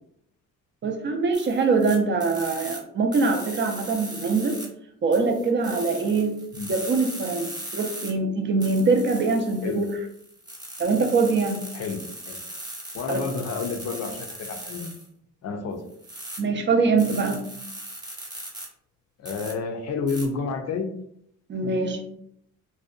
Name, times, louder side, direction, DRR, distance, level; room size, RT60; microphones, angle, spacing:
voice 1, 0.8-4.6 5.0-6.4 6.7-9.9 10.8-11.6 13.1-13.2 16.4-17.4 21.5-22.0, right 4 dB, 40° right, 4 dB, 0.5 m, -23 dB
sound 1, 1.3-2.8 3.1-4.7 5.1-8.1 8.6-15.1 15.9-16.4 17.0-18.7 19.3-19.5 20.1-20.3, right 1 dB, 15° right, 0.9 m, -39 dB
voice 2, 11.7-12.4 12.9-14.9 15.4-15.8 19.2-20.9, left 4 dB, 60° left, 5 dB, 0.5 m, -30 dB
2.6 x 2.1 x 2.4 m, 0.69 s
cardioid pair, 90°, 30 cm